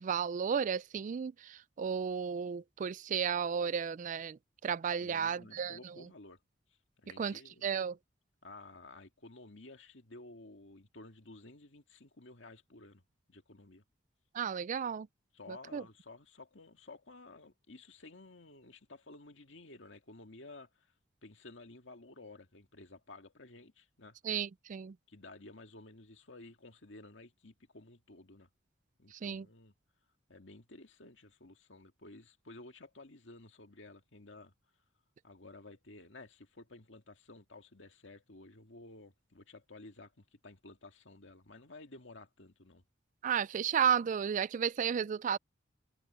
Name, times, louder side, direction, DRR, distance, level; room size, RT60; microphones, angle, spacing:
voice 1, 0.0-5.9 7.2-7.3 7.6-8.0 14.3-15.1 15.7-15.8 24.2-24.9 29.2-29.4 43.2-45.4, right 7 dB, 40° right, 0.3 m, -33 dB
voice 2, 5.0-6.4 7.0-7.7 8.4-13.0 13.3-13.8 15.3-20.9 21.2-24.2 25.1-28.5 29.0-29.7 30.3-34.5 35.2-42.8, left 2 dB, 70° left, 2.2 m, -53 dB
head